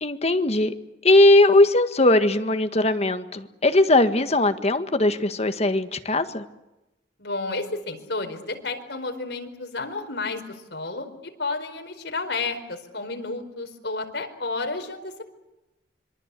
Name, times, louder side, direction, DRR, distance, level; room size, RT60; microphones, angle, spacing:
voice 1, 0.0-0.7 1.0-6.4, left 2 dB, 35° left, 8 dB, 1.7 m, -19 dB
voice 2, 7.2-15.2, left 3 dB, 65° left, 5 dB, 4.7 m, -31 dB
26.0 x 23.5 x 8.4 m, 0.96 s
head